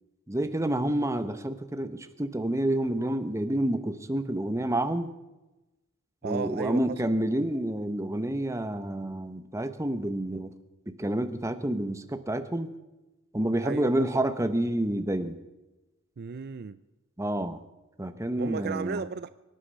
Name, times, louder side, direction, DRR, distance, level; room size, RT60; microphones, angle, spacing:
voice 1, 0.3-5.1 6.2-10.5 10.9-12.8 13.3-15.4 17.2-17.6 18.0-19.0, right 1 dB, 15° right, 9 dB, 0.9 m, -29 dB
voice 2, 6.2-7.0 13.6-14.1 16.2-16.8 18.4-19.3, right 5 dB, 50° right, 14 dB, 0.4 m, -34 dB
24.0 x 9.7 x 5.5 m, 1.0 s
head